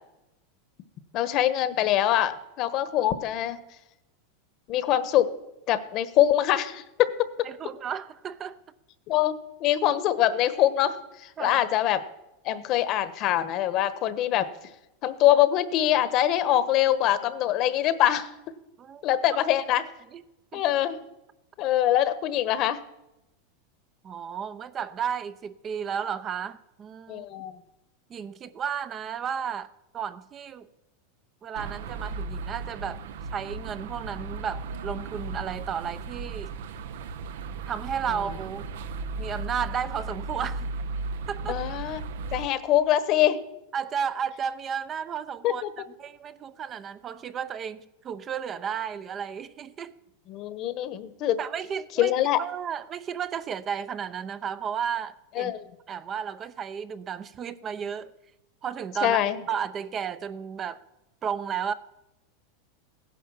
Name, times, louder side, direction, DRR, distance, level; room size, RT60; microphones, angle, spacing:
voice 1, 1.1-3.6 4.7-5.3 5.7-7.5 9.1-12.0 12.4-14.5 15.0-18.3 19.0-19.8 20.5-21.0 21.6-22.8 27.1-27.6 41.5-42.0 42.3-43.4 45.4-45.7 50.3-51.4 52.0-52.4 55.3-55.7 59.0-59.4, left 12 dB, 45° left, 14 dB, 1.2 m, -24 dB
voice 2, 7.4-8.6 11.4-11.6 18.8-19.0 19.3-19.4 20.1-20.2 20.5-20.6 24.0-27.3 28.1-30.7 31.4-33.0 33.3-36.5 37.7-38.7 39.2-40.7 41.3-41.6 43.7-45.6 46.0-50.0 51.4-55.5 55.9-58.1 58.6-59.2 59.5-60.8 61.2-61.7, right 7 dB, 25° right, 13 dB, 0.7 m, -33 dB
sound 1, 31.5-42.5, right 3 dB, 75° right, 1.0 m, -36 dB
16.5 x 10.5 x 7.3 m, 0.93 s
supercardioid pair, 135°, 0 cm